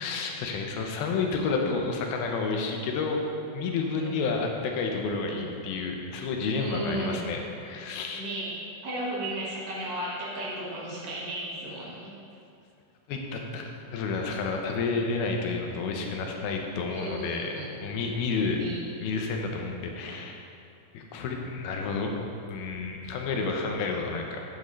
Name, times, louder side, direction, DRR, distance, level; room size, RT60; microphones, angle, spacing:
voice 1, 0.0-3.2 3.5-8.2 13.1-17.5 17.8-18.6 19.0-20.4 20.9-22.1 22.5-24.4, left 4 dB, 85° left, 2 dB, 2.7 m, -30 dB
voice 2, 6.5-7.2 8.1-12.1 16.9-17.7 18.5-18.8, right 1 dB, 65° right, -7 dB, 3.1 m, -35 dB
8.9 x 8.4 x 3.2 m, 2.5 s
omnidirectional pair, 4.3 m